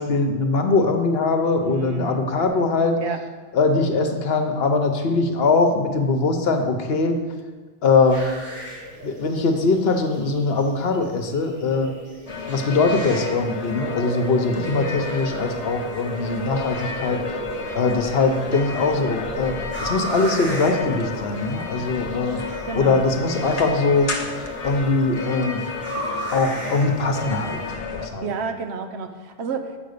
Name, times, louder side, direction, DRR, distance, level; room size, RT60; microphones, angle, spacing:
voice 1, 0.0-3.0 3.5-7.2 7.8-8.2 9.0-11.9 12.5-17.2 17.7-19.5 19.8-22.4 22.7-24.1 24.6-25.6 26.3-27.6 27.9-28.3, left 3 dB, 70° left, 5 dB, 1.1 m, -21 dB
voice 2, 1.6-2.3 3.0-3.2 14.5-15.0 22.7-23.5 28.2-29.8, right 4 dB, 80° right, 7 dB, 1.0 m, -31 dB
sound 1, 8.0-27.7, right 1 dB, 65° right, 3.6 m, -35 dB
sound 2, 12.3-28.1, left 4 dB, 40° left, 0.9 m, -32 dB
7.7 x 5.2 x 6.7 m, 1.4 s
omnidirectional pair, 1.1 m